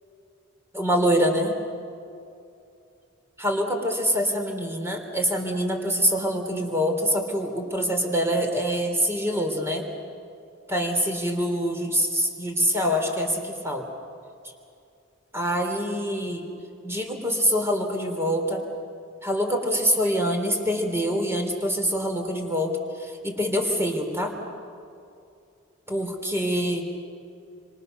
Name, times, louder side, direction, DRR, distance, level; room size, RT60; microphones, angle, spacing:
voice 1, 0.7-1.5 3.4-9.9 10.7-13.9 15.3-16.5 16.8-18.6 19.2-24.3 25.9-26.8, equal, 15° right, 3 dB, 3.5 m, -25 dB
28.0 x 26.0 x 6.7 m, 2.5 s
head